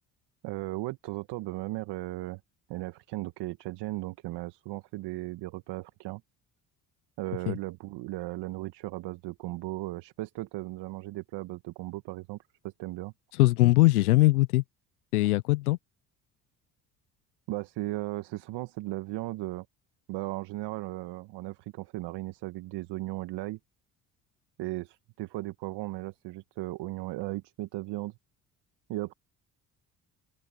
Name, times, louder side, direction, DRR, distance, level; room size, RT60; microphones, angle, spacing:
voice 1, 0.4-2.4 2.7-6.2 7.2-12.4 12.6-13.1 17.5-19.7 20.1-23.6 24.6-28.1 28.9-29.1, right 18 dB, 70° right, 1.6 m, -36 dB
voice 2, 13.3-14.6 15.1-15.8, left 20 dB, 90° left, 0.7 m, -21 dB
open air
hypercardioid pair, 55°, 43 cm